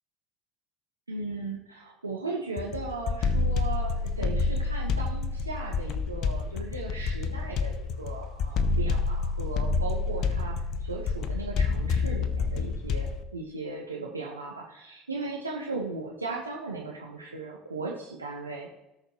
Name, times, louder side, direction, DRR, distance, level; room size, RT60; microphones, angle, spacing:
voice 1, 1.1-18.7, right 3 dB, 90° right, -2 dB, 1.3 m, -37 dB
sound 1, 2.6-13.2, left 4 dB, 50° left, 0.9 m, -28 dB
18.5 x 6.6 x 3.0 m, 0.94 s
figure-of-eight pair, 65°, 0 cm